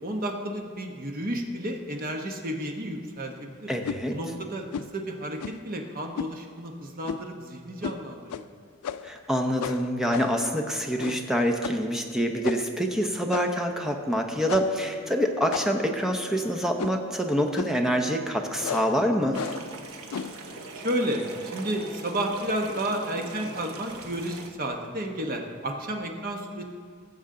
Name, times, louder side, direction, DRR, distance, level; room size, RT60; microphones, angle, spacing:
voice 1, 0.0-3.7 4.1-4.6 4.9-5.4 5.6-8.5 20.7-26.6, right 1 dB, 40° right, 3 dB, 1.0 m, -32 dB
voice 2, 3.7-4.2 9.0-19.4, equal, ahead, 3 dB, 0.7 m, -26 dB
sound 1, 3.8-4.0 4.7-5.0 5.4-5.7 6.2-6.4 7.0-7.3 7.8-8.0 8.3-8.4 8.8-9.2 9.6-10.5 11.0-11.3 11.6-11.9 12.4-12.8 13.3-13.7 14.5-14.8 15.5-15.9 16.8-17.1 17.6-17.8 18.6-19.0 19.3-19.7 20.1-20.4, left 7 dB, 90° left, 0.4 m, -34 dB
sound 2, 19.3-24.5, right 2 dB, 75° right, 1.0 m, -42 dB
18.0 x 7.2 x 3.8 m, 2.1 s
head